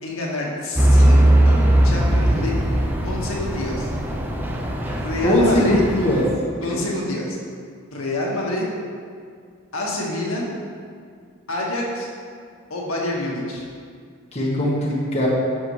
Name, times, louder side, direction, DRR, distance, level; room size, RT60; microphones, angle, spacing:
voice 1, 0.0-2.6 3.0-3.9 5.0-5.8 6.6-7.4 7.9-8.6 9.7-10.5 11.5-12.1 12.7-13.6, left 1 dB, 75° left, -3 dB, 1.9 m, -27 dB
Truck / Idling, 0.8-6.3, right 1 dB, 10° right, 0.7 m, -19 dB
voice 2, 5.2-6.7 14.3-15.3, left 1 dB, 30° left, -5 dB, 1.6 m, -20 dB
12.5 x 7.1 x 3.3 m, 2.1 s
head